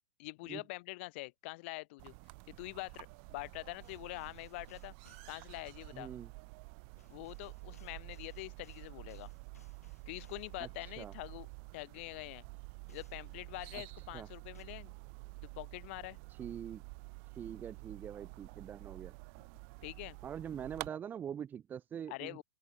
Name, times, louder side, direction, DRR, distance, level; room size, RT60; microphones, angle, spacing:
voice 1, 0.2-2.1 2.5-4.9 5.3-6.1 7.1-9.3 10.1-11.5 11.7-12.5 12.9-14.9 15.4-16.2 19.8-20.2 22.1-22.4, left 23 dB, 50° left, 1.8 m, -45 dB
sound 1, 2.0-20.9, right 39 dB, 45° right, 3.1 m, -50 dB
sound 2, 3.8-5.4 7.0-10.6 12.9-13.3 14.5-14.6, left 5 dB, 90° left, 3.0 m, -65 dB
voice 2, 5.9-6.3 10.6-10.7 11.0-11.1 13.7-13.8 14.1-14.3 16.4-16.8 17.3-19.1 20.2-22.4, right 8 dB, 25° right, 1.5 m, -43 dB
open air
hypercardioid pair, 110°, 8 cm